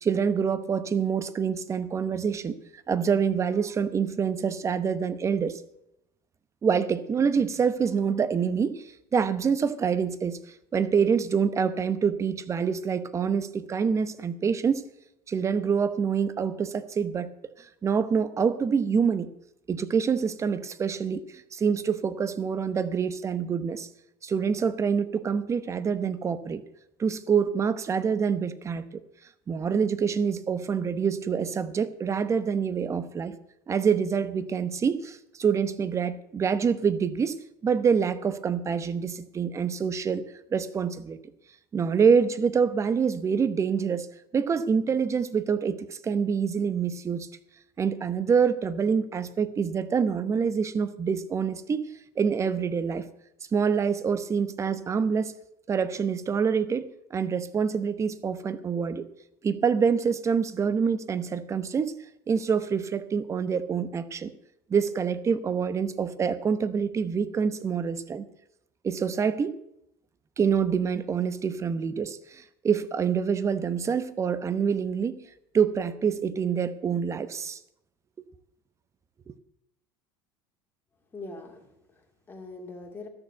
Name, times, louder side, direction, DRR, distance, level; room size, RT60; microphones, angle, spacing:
voice 1, 0.0-5.6 6.6-10.4 10.7-14.8 15.3-17.3 17.6-19.3 19.7-21.2 21.5-23.9 24.2-26.6 27.0-28.9 29.5-33.4 33.7-40.2 40.5-41.2 41.7-44.1 44.3-47.3 47.8-51.9 52.2-53.1 53.5-55.3 55.7-59.1 59.4-62.0 62.3-64.3 64.7-68.3 68.8-69.6 70.4-75.2 75.5-77.6 79.3-79.4, right 6 dB, 25° right, 14 dB, 0.9 m, -26 dB
voice 2, 81.1-83.1, left 3 dB, 20° left, 2 dB, 2.6 m, -43 dB
13.0 x 6.9 x 8.0 m, 0.82 s
supercardioid pair, 110°, 11 cm